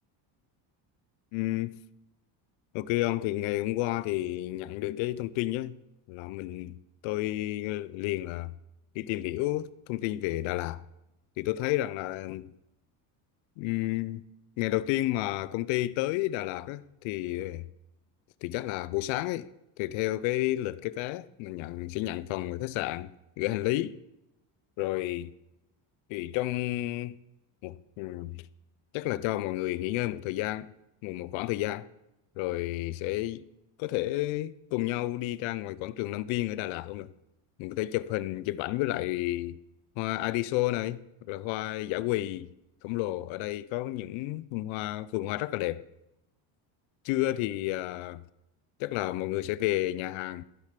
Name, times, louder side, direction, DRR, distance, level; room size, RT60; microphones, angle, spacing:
voice 1, 1.3-1.8 2.7-5.8 6.1-8.5 8.9-10.8 11.4-12.5 13.6-14.2 14.6-17.7 18.4-19.5 19.8-24.0 24.8-25.3 26.1-27.2 27.6-28.5 28.9-30.7 31.0-31.9 32.4-33.4 33.8-37.1 37.6-39.6 40.0-42.5 42.8-45.9 47.0-48.2 48.8-50.4, left 16 dB, 70° left, 0.6 m, -31 dB
14.0 x 4.9 x 5.8 m
cardioid pair, 145°, 48 cm